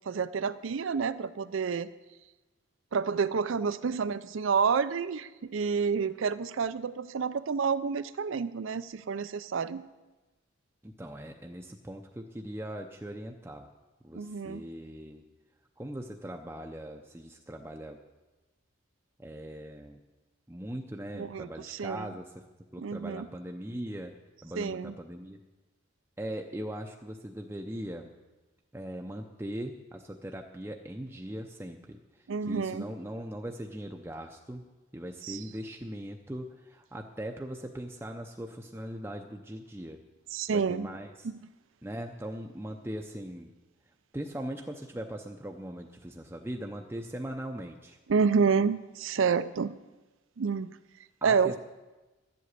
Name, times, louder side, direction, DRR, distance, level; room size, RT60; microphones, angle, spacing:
voice 1, 0.1-1.9 2.9-9.8 14.1-14.7 21.1-22.1 22.8-23.3 24.6-24.9 32.3-32.9 35.2-35.4 40.3-40.9 48.1-49.7 50.4-50.7 51.2-51.6, right 5 dB, 70° right, 15 dB, 0.5 m, -29 dB
voice 2, 10.8-13.7 14.0-15.2 15.8-18.0 19.2-20.0 20.5-22.4 22.7-24.1 24.4-25.4 26.2-28.1 28.7-34.6 34.9-40.0 40.5-41.3 41.8-43.5 44.1-48.0 51.2-51.6, right 1 dB, 10° right, 2 dB, 0.6 m, -40 dB
12.0 x 7.8 x 8.2 m, 1.1 s
head